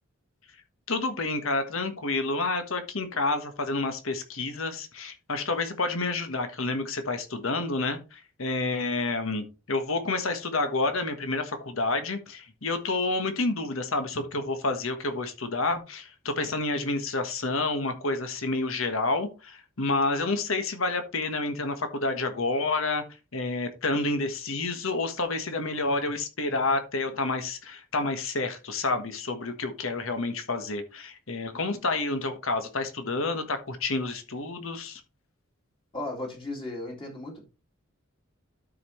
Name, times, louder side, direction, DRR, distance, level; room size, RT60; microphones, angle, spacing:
voice 1, 0.9-23.0 23.3-35.0, left 3 dB, 80° left, 7 dB, 1.5 m, -29 dB
voice 2, 35.9-37.4, left 2 dB, 25° left, -1 dB, 2.2 m, -35 dB
12.5 x 5.1 x 3.1 m, 0.31 s
head